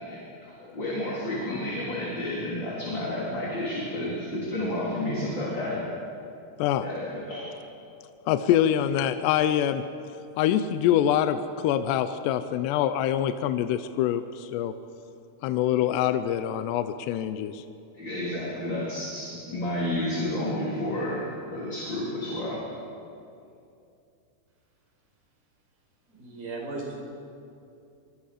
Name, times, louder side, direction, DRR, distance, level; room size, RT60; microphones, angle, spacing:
voice 1, 0.0-5.8 6.8-7.5 17.9-21.3 21.5-22.6, left 1 dB, 30° left, -6 dB, 3.6 m, -31 dB
voice 2, 8.3-9.8 10.4-14.7 15.4-17.6, left 10 dB, 80° left, 10 dB, 2.8 m, -25 dB
voice 3, 26.1-27.0, right 3 dB, 60° right, -1 dB, 6.7 m, -36 dB
25.0 x 25.0 x 5.0 m, 2.6 s
omnidirectional pair, 4.9 m